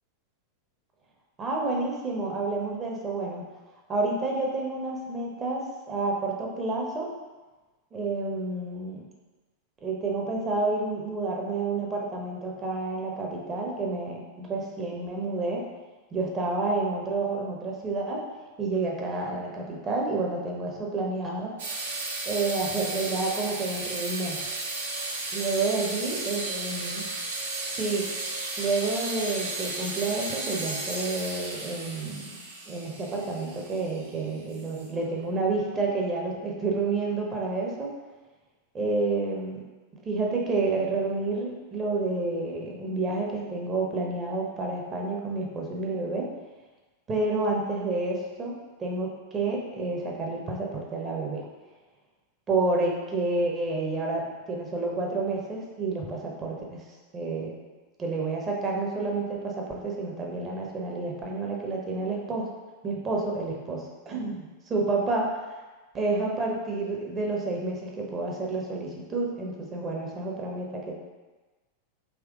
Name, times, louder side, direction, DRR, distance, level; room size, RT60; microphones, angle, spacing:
voice 1, 1.4-3.4 3.9-7.1 7.9-9.1 9.8-15.6 16.1-18.2 18.6-21.5 22.3-24.4 25.3-27.1 27.7-28.1 28.6-32.4 32.7-37.9 38.7-39.6 40.0-46.3 47.1-51.5 52.5-56.9 57.1-57.6 58.0-62.5 62.8-64.4 64.7-65.3 65.9-71.0, right 3 dB, 25° right, -1 dB, 0.8 m, -29 dB
sound 1, 21.6-35.0, right 2 dB, 60° right, 0.8 m, -34 dB
3.6 x 2.9 x 3.6 m, 1.2 s
figure-of-eight pair, 90°, 0 cm